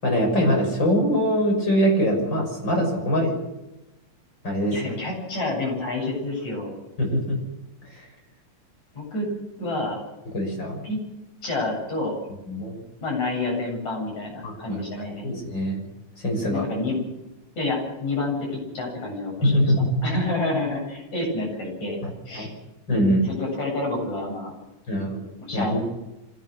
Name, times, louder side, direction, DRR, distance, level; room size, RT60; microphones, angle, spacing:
voice 1, 0.0-3.3 4.4-4.9 7.0-7.4 7.9-8.1 10.3-10.8 12.5-12.7 14.4-15.8 16.2-16.7 19.4-19.9 22.0-22.1 22.3-22.5 22.9-23.3 24.9-25.2 25.5-25.8, equal, 35° left, 2 dB, 6.9 m, -23 dB
voice 2, 4.7-6.8 8.9-9.3 9.6-10.0 10.8-11.0 11.4-12.2 13.0-15.3 16.5-17.0 17.6-18.5 18.7-19.7 20.0-22.0 22.3-22.5 23.2-24.5 25.4-25.8, left 2 dB, 60° left, 0 dB, 9.4 m, -28 dB
25.0 x 17.0 x 6.6 m, 0.99 s
omnidirectional pair, 3.7 m